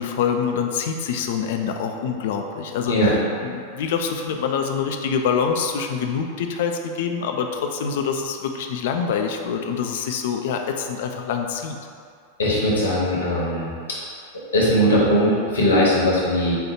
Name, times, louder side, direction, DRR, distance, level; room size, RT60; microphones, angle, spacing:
voice 1, 0.0-3.0 3.4-11.8, left 6 dB, 55° left, 4 dB, 0.4 m, -25 dB
voice 2, 12.4-14.0 14.5-16.6, equal, 70° left, -5 dB, 1.1 m, -19 dB
4.5 x 2.3 x 4.3 m, 2.3 s
figure-of-eight pair, 90°, 0 cm